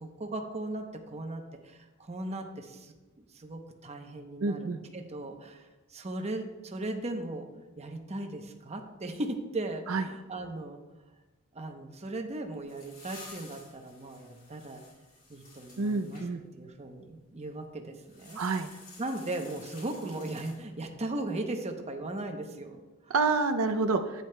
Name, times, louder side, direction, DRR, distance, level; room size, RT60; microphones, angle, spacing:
voice 1, 0.0-7.5 7.8-10.8 11.5-14.8 15.3-16.2 16.6-18.4 18.7-23.1, right 2 dB, 30° right, 4 dB, 0.8 m, -38 dB
voice 2, 4.4-4.8 9.9-10.0 15.8-16.4 18.4-18.7 23.1-24.2, right 4 dB, 85° right, 6 dB, 0.5 m, -28 dB
sound 1, 12.3-16.3 18.0-20.9, left 2 dB, 45° left, 2.7 m, -52 dB
11.0 x 9.0 x 2.2 m, 1.2 s
head